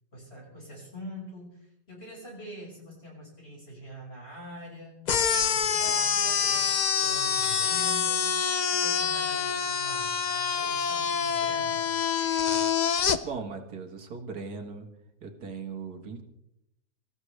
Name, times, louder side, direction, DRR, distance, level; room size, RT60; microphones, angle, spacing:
voice 1, 0.1-6.7 7.0-8.3 8.7-11.8, equal, 40° left, -2 dB, 5.7 m, -44 dB
sound 1, 5.1-13.2, left 7 dB, 90° left, 0.3 m, -26 dB
voice 2, 13.2-14.9 15.2-16.2, right 5 dB, 85° right, 4 dB, 2.1 m, -38 dB
25.0 x 14.0 x 3.3 m, 0.82 s
omnidirectional pair, 1.6 m